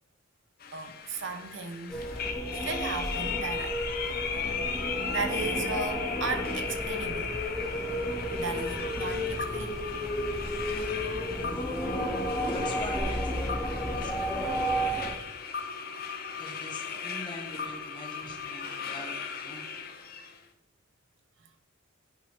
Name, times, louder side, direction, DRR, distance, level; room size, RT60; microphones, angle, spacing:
sound 1, 0.6-20.4, left 6 dB, 45° left, 0.8 m, -37 dB
voice 1, 0.7-2.1 2.5-3.8 5.1-7.4 8.4-9.8, right 4 dB, 60° right, 0.7 m, -35 dB
sound 2, 1.9-15.1, equal, 5° left, 1.5 m, -32 dB
voice 2, 11.4-11.9 12.5-13.5 13.8-14.5 16.4-19.7, left 1 dB, 20° left, 1.2 m, -44 dB
9.7 x 5.4 x 3.5 m
head